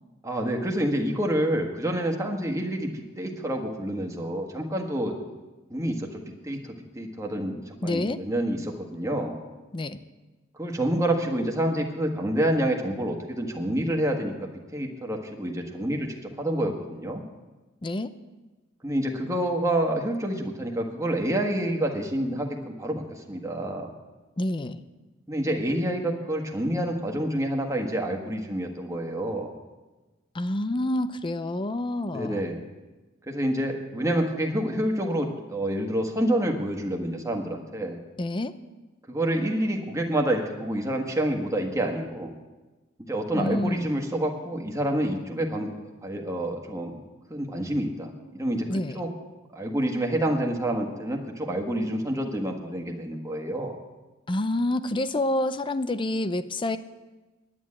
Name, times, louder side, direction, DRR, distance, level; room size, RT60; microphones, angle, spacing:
voice 1, 0.2-5.2 5.7-9.4 10.6-14.3 14.7-17.2 18.8-23.9 25.3-29.5 32.1-32.6 33.3-38.0 39.1-42.3 43.1-45.7 46.0-47.0 47.3-49.1 49.5-53.8, right 1 dB, 15° right, 1 dB, 1.5 m, -28 dB
voice 2, 7.8-8.2 9.7-10.0 17.8-18.1 24.4-24.8 30.3-32.4 38.2-38.5 43.3-43.9 48.7-49.0 54.3-56.8, left 1 dB, 25° left, 13 dB, 0.5 m, -28 dB
10.0 x 9.9 x 8.6 m, 1.2 s
head